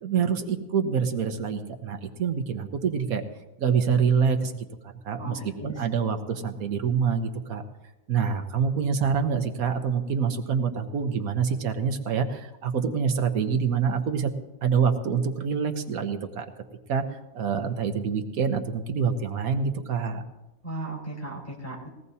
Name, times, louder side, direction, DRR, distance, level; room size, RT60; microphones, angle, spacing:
voice 1, 0.0-3.2 3.6-4.6 5.0-7.6 8.1-14.3 14.6-16.5 16.9-17.0 17.3-20.2, right 6 dB, 80° right, 6 dB, 1.5 m, -26 dB
voice 2, 5.2-5.8 20.6-21.9, right 2 dB, 35° left, -3 dB, 4.8 m, -36 dB
20.5 x 16.5 x 2.8 m, 1.0 s
omnidirectional pair, 1.5 m